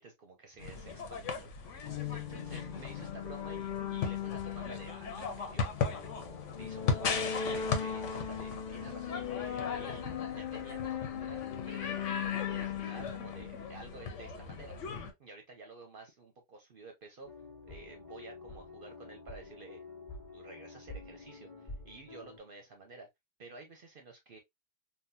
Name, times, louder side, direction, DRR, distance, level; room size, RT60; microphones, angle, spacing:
voice 1, 0.0-5.7 6.0-14.8 15.2-17.3 17.7-19.8 20.3-23.1 23.4-24.4, right 3 dB, 55° right, 0.8 m, -52 dB
sound 1, 0.6-15.1, left 5 dB, 85° left, 1.1 m, -38 dB
sound 2, 1.8-14.3, left 8 dB, 55° left, 0.6 m, -39 dB
sound 3, 17.2-22.4, left 3 dB, 15° left, 1.2 m, -48 dB
3.7 x 2.2 x 2.6 m
omnidirectional pair, 1.2 m